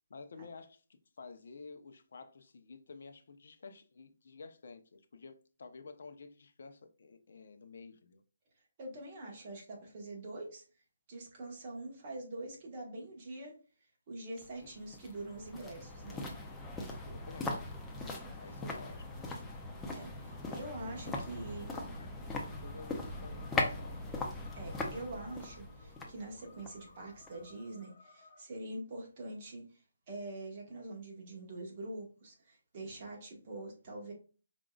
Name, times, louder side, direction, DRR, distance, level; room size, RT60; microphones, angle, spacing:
voice 1, 0.1-8.2 14.6-15.0 17.0-17.7 18.4-19.0 20.4-21.4 21.7-24.0, left 4 dB, 60° left, 0.7 m, -52 dB
voice 2, 8.8-10.6 11.1-13.5 14.1-16.3 19.9-21.7 24.6-29.8 30.1-34.1, right 2 dB, 30° right, 1.3 m, -44 dB
sound 1, 14.4-27.5 27.8-27.9, left 2 dB, 5° left, 0.5 m, -40 dB
sound 2, 20.3-28.4, left 2 dB, 40° left, 2.3 m, -60 dB
5.0 x 3.7 x 2.3 m
hypercardioid pair, 170°, 0 cm